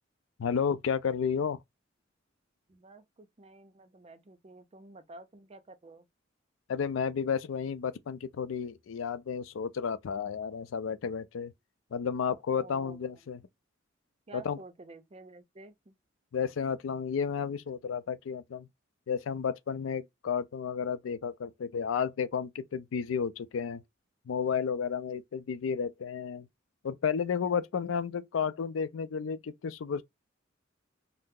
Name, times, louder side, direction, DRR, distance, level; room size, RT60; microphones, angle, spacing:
voice 1, 0.4-1.6 6.7-11.5 11.9-13.4 14.3-14.6 16.3-18.7 19.1-23.8 24.3-26.5 26.8-30.0, left 6 dB, 80° left, 0.4 m, -32 dB
voice 2, 2.7-6.1 12.2-13.0 14.3-15.9, right 3 dB, 30° right, 0.5 m, -51 dB
2.7 x 2.0 x 3.6 m
head